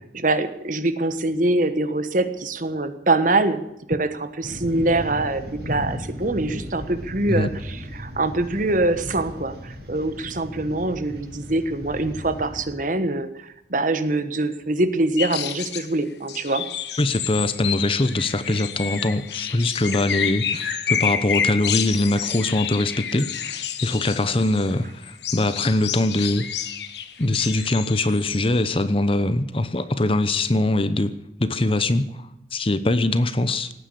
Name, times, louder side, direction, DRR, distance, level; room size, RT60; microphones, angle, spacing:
voice 1, 0.1-3.6 3.9-16.6, right 2 dB, 45° right, 11 dB, 1.3 m, -24 dB
sound 1, 4.4-12.7, left 1 dB, 65° right, 5.7 m, -36 dB
sound 2, 15.2-15.9 16.3-24.7 25.0-28.8, left 8 dB, 75° left, 1.3 m, -29 dB
voice 2, 17.0-26.5 27.2-33.7, left 2 dB, 30° left, 13 dB, 0.9 m, -22 dB
18.0 x 9.7 x 8.0 m, 0.83 s
head